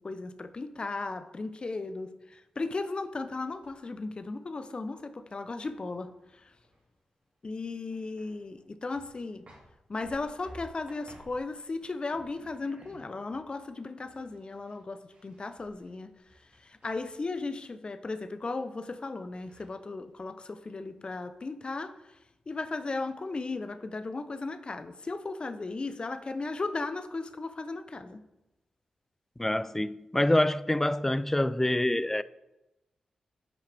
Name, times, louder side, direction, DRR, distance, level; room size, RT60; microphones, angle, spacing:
voice 1, 0.0-6.5 7.4-9.5 9.9-16.1 16.6-22.1 22.5-28.2, left 3 dB, 45° left, 0.7 m, -36 dB
sound 1, 3.3-4.0 4.4-7.0 7.3-7.4 7.8-8.7 8.9-17.5 19.0-19.1 19.4-20.2 20.6-21.3, right 1 dB, 60° right, 2.7 m, -57 dB
voice 2, 29.4-32.2, left 1 dB, 15° left, 0.4 m, -26 dB
9.5 x 5.6 x 3.5 m
supercardioid pair, 40°, 2 cm